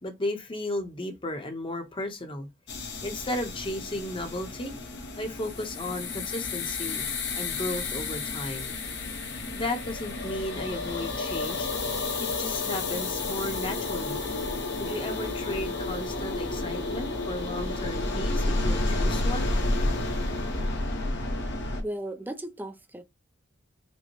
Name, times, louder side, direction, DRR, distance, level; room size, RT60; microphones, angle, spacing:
voice 1, 0.0-2.5 3.0-4.7 5.2-7.0 7.3-8.7 9.5-11.7 12.2-14.2 14.8-19.5, left 1 dB, 25° left, 0.8 m, -34 dB
sound 1, 2.7-21.8, left 2 dB, 60° left, 1.0 m, -31 dB
voice 2, 21.8-23.0, right 1 dB, 10° right, 0.4 m, -36 dB
5.3 x 2.1 x 2.9 m
head